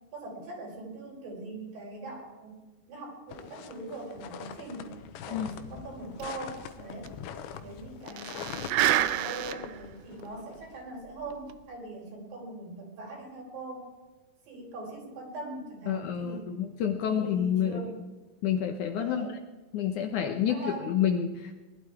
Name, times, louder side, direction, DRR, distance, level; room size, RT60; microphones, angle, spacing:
voice 1, 0.1-2.6 2.9-5.0 5.3-7.1 7.6-13.9 14.5-16.6 17.1-18.0 18.9-19.4 20.4-20.9, right 2 dB, 65° right, -1 dB, 5.7 m, -41 dB
sound 1, 3.3-10.8, left 9 dB, 85° left, 2.9 m, -43 dB
sound 2, 6.2-6.3 6.6-6.7 7.1-7.2 8.1-9.8 10.3-10.4 11.3-11.5, right 13 dB, 85° right, 2.7 m, -28 dB
voice 2, 15.9-17.8 18.4-19.3 19.7-21.6, left 9 dB, 70° left, 5 dB, 2.1 m, -29 dB
20.0 x 12.0 x 4.6 m, 1.2 s
omnidirectional pair, 4.3 m